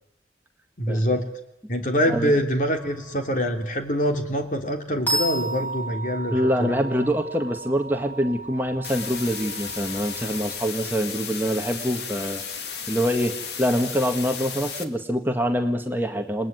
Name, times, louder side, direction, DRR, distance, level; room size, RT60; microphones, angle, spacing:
voice 1, 0.8-1.3 1.7-6.8, equal, 45° left, 5 dB, 3.2 m, -25 dB
sound 1, 2.7-10.5, right 1 dB, 10° left, 5.1 m, -33 dB
voice 2, 6.3-12.4 12.9-16.5, equal, 10° right, 5 dB, 1.6 m, -25 dB
sound 2, 8.8-14.8, left 6 dB, 70° left, 2.2 m, -34 dB
29.5 x 20.5 x 9.5 m, 0.85 s
head